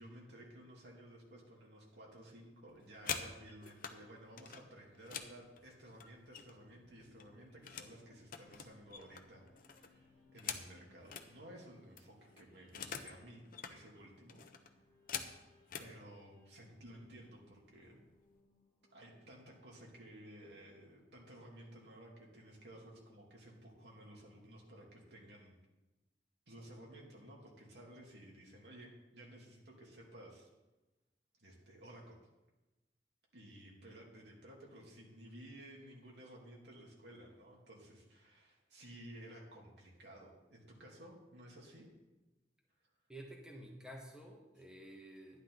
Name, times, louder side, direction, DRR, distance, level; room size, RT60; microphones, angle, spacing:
voice 1, 0.0-14.8 15.8-18.0 18.9-25.6 26.5-30.5 31.4-32.2 33.3-41.9, right 1 dB, 75° right, -2 dB, 2.8 m, -55 dB
sound 1, 2.7-4.0 4.4-6.7 7.0-8.0 8.3-11.3 11.7-11.8 12.0-13.2 13.5-13.8 14.3-15.9 16.7-16.9 17.3-17.6 17.9-18.4, left 7 dB, 50° left, 0.9 m, -45 dB
sound 2, 6.5-23.7, left 3 dB, 25° left, 2.1 m, -70 dB
voice 2, 43.1-45.4, right 1 dB, 5° right, -1 dB, 1.5 m, -51 dB
12.0 x 11.0 x 4.0 m, 1.1 s
head